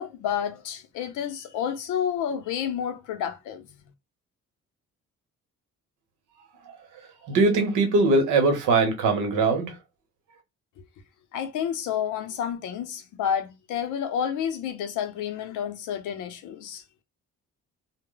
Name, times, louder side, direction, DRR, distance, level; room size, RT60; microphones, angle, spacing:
voice 1, 0.0-3.9 11.3-16.8, left 8 dB, 85° left, 0.6 m, -30 dB
voice 2, 6.7-9.8, right 3 dB, 85° right, 0.9 m, -22 dB
2.1 x 2.0 x 3.7 m
cardioid pair, 90°, 30 cm